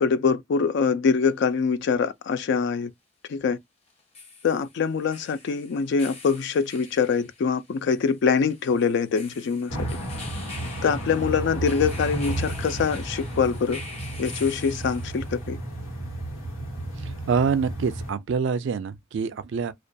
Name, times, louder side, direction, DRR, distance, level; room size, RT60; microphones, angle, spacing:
voice 1, 0.0-2.9 3.3-3.6 4.4-9.7 10.8-13.8 14.2-15.6, left 5 dB, 60° left, 0.3 m, -24 dB
sound 1, 1.3-1.4 3.9-15.5, left 3 dB, 30° left, 0.7 m, -45 dB
sound 2, 9.7-18.1, right 1 dB, 90° left, 1.3 m, -33 dB
voice 2, 17.0-19.7, right 5 dB, 60° right, 0.3 m, -26 dB
2.3 x 2.2 x 2.6 m
head